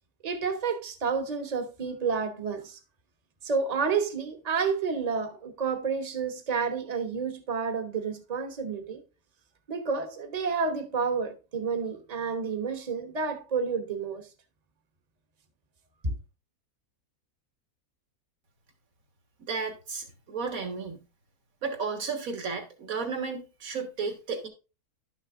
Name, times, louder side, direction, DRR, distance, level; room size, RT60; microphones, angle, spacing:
voice 1, 0.2-2.8 3.4-9.0 9.7-14.3 16.0-16.1, right 5 dB, 30° right, 1.0 m, -30 dB
voice 2, 19.5-21.0 21.6-24.5, right 5 dB, 65° right, 2.0 m, -33 dB
11.5 x 6.4 x 2.5 m
omnidirectional pair, 1.6 m